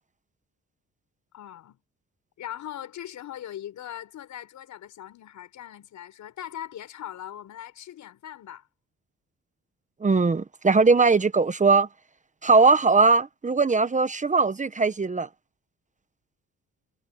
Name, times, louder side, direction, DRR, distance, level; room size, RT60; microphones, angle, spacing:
voice 1, 1.3-1.8 2.4-8.7, left 11 dB, 75° left, 6.2 m, -40 dB
voice 2, 10.0-11.9 12.4-15.3, right 4 dB, 25° right, 1.1 m, -20 dB
cardioid pair, 90°, 30 cm